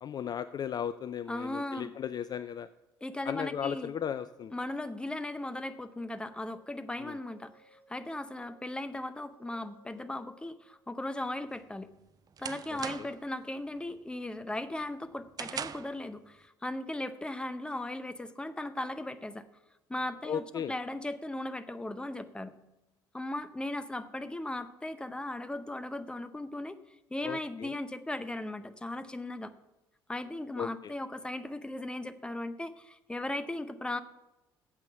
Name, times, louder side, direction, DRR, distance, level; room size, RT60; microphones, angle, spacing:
voice 1, 0.0-2.7 3.3-4.5 7.0-7.2 12.7-13.1 20.2-20.7 27.2-27.7 30.6-30.9, left 8 dB, 35° left, 14 dB, 0.4 m, -36 dB
voice 2, 1.3-1.9 3.0-3.9 4.5-11.9 12.4-19.4 19.9-22.6 23.1-26.8 27.1-29.5 30.1-34.0, left 1 dB, 10° left, 12 dB, 0.7 m, -37 dB
sound 1, 3.0-11.7, right 3 dB, 85° right, 1.4 m, -63 dB
sound 2, 11.5-13.3 13.7-14.1 14.5-16.0, right 7 dB, 35° right, 0.5 m, -41 dB
8.9 x 7.9 x 6.9 m, 0.96 s
figure-of-eight pair, 50°, 12 cm